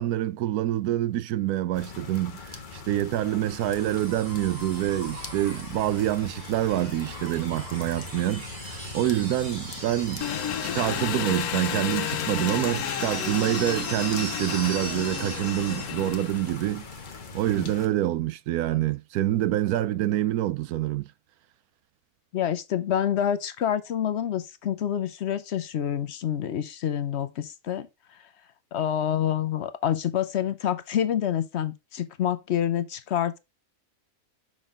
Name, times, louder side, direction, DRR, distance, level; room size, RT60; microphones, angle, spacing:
voice 1, 0.0-10.3 10.6-16.9 17.3-21.1, right 13 dB, 85° right, 1.1 m, -26 dB
sound 1, 1.7-17.9, left 4 dB, 40° left, 1.0 m, -41 dB
sound 2, 3.2-17.2 18.7-18.8, right 2 dB, 55° right, 2.8 m, -41 dB
Engine, 10.2-16.7, left 10 dB, 85° left, 1.2 m, -32 dB
voice 2, 22.3-27.9 28.7-33.4, left 10 dB, 55° left, 0.8 m, -27 dB
6.3 x 6.0 x 3.6 m
omnidirectional pair, 1.5 m